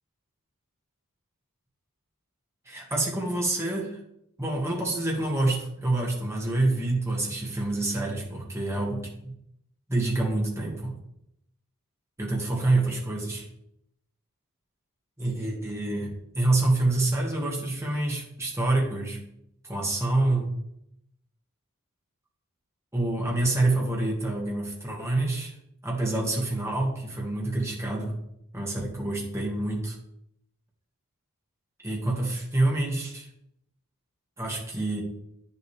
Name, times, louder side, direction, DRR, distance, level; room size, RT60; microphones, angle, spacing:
voice 1, 2.7-4.0 4.4-9.3 9.9-10.9 12.2-13.5 15.2-19.2 19.6-20.5 22.9-25.6 25.8-28.2 28.5-30.0 31.8-33.3 34.4-35.0, right 2 dB, 15° right, -2 dB, 1.9 m, -27 dB
9.4 x 7.2 x 3.4 m, 0.78 s
head